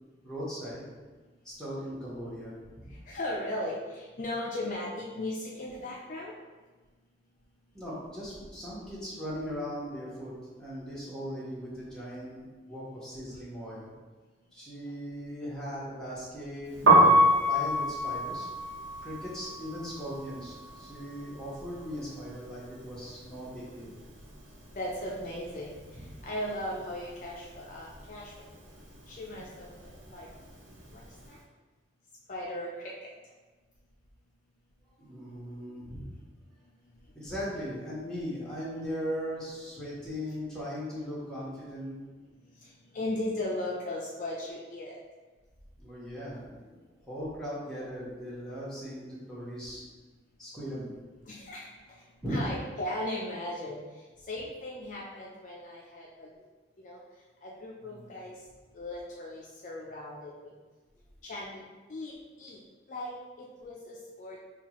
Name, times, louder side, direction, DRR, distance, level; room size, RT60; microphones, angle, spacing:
voice 1, 0.2-0.8 1.4-2.9 7.7-10.3 10.6-13.9 14.5-16.7 17.5-18.5 19.0-23.9 25.9-26.1 35.0-36.1 37.1-42.0 45.8-49.8 50.4-50.9 52.2-52.5 57.8-58.2, equal, 5° left, -9 dB, 1.1 m, -38 dB
voice 2, 3.1-6.3 24.7-25.8 26.2-28.3 29.1-29.7 30.1-30.3 31.3-31.4 32.3-32.7 42.9-45.0 51.3-51.6 52.3-53.8 54.3-56.3 56.8-57.0 57.4-58.4 58.7-60.5 61.2-62.1 62.4-62.6 62.9-63.1 63.4-64.4, left 1 dB, 45° left, -4 dB, 0.5 m, -37 dB
Piano, 16.7-22.7 22.9-24.5 24.8-31.2, right 1 dB, 85° right, 1.0 m, -27 dB
5.7 x 2.3 x 2.9 m, 1.3 s
head